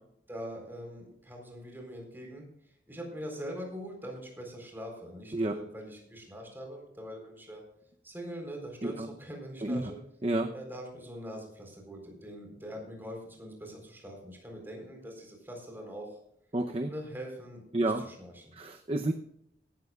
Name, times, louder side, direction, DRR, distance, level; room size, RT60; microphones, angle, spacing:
voice 1, 0.3-7.6 8.0-10.0 10.5-16.2 16.9-18.5, equal, 10° right, 1 dB, 4.1 m, -43 dB
voice 2, 10.2-10.5 16.5-16.9 17.7-18.0 18.6-19.1, right 2 dB, 35° right, 5 dB, 0.7 m, -30 dB
17.5 x 13.5 x 2.4 m, 0.74 s
head